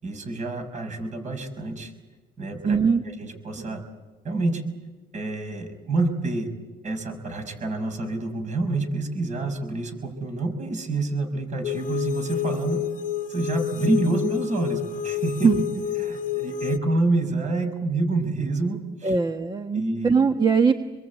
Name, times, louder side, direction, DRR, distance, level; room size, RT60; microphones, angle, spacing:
voice 1, 0.0-1.9 2.4-2.8 3.1-3.8 4.2-4.6 5.1-6.5 6.8-12.8 13.3-15.5 16.0-19.1 19.7-20.3, right 2 dB, 45° right, 6 dB, 5.7 m, -27 dB
voice 2, 2.6-3.0 3.6-3.8 15.4-15.6 19.0-20.8, right 5 dB, 25° right, 6 dB, 1.4 m, -21 dB
sound 1, 11.6-16.8, left 9 dB, 50° left, 1.0 m, -29 dB
27.0 x 22.5 x 8.3 m, 1.2 s
cardioid pair, 110°, 17 cm